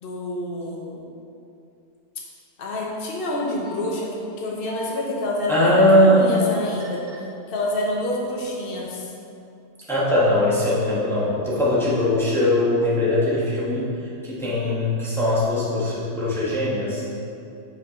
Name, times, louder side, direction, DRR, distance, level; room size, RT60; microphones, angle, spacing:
voice 1, 0.0-1.0 2.6-7.0 7.5-9.1, left 1 dB, 55° left, -2 dB, 0.6 m, -28 dB
sound 1, 3.6-3.7 4.4-4.9 6.1-6.5 6.8-7.2 7.9-8.4 8.8-8.9, left 1 dB, 75° right, 2.0 m, -40 dB
voice 2, 5.5-6.3 9.9-17.0, left 1 dB, ahead, -8 dB, 1.0 m, -20 dB
7.6 x 4.8 x 3.7 m, 2.6 s
omnidirectional pair, 2.2 m